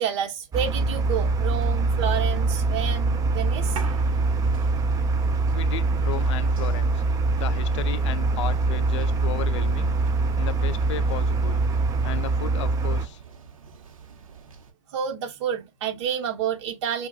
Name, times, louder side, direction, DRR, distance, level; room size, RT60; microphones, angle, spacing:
voice 1, 0.0-3.8 14.9-17.1, right 8 dB, 55° right, 1.2 m, -29 dB
sound 1, 0.5-13.1, right 3 dB, 20° right, 0.6 m, -24 dB
sound 2, 3.3-14.7, right 5 dB, 75° right, 0.9 m, -45 dB
voice 2, 5.5-7.0 7.4-9.9 10.4-11.6 12.0-13.2, left 12 dB, 60° left, 0.5 m, -34 dB
4.6 x 2.4 x 2.4 m
hypercardioid pair, 105°, 17 cm